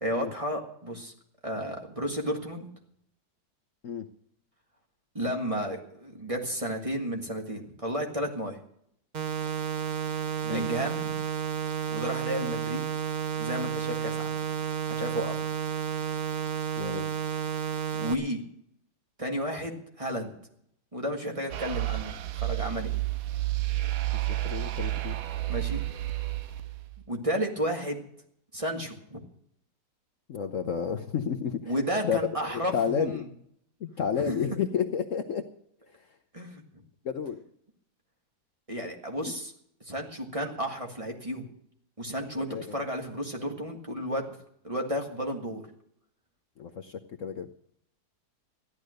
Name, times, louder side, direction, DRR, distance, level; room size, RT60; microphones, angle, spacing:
voice 1, 0.0-1.1 1.4-2.7 5.1-8.6 10.4-11.2 11.9-12.9 13.4-14.3 15.0-15.4 18.0-18.4 19.2-20.3 20.9-22.9 25.5-25.8 27.1-28.0 28.5-29.2 31.7-33.2 34.2-34.4 36.3-36.6 38.7-39.5 39.8-41.5 42.0-44.4 44.6-45.6, equal, 20° right, 1 dB, 1.8 m, -32 dB
sound 1, 9.1-18.1, right 8 dB, 40° right, 0.6 m, -31 dB
voice 2, 16.8-17.1 24.4-25.2 30.3-31.7 32.0-32.2 32.7-33.2 33.8-35.4 37.0-37.4 42.4-42.7 46.6-47.5, left 7 dB, 55° left, 6 dB, 1.0 m, -31 dB
sound 2, 21.5-27.0, right 17 dB, 65° right, 1.0 m, -31 dB
14.0 x 11.0 x 6.5 m, 0.71 s
omnidirectional pair, 1.8 m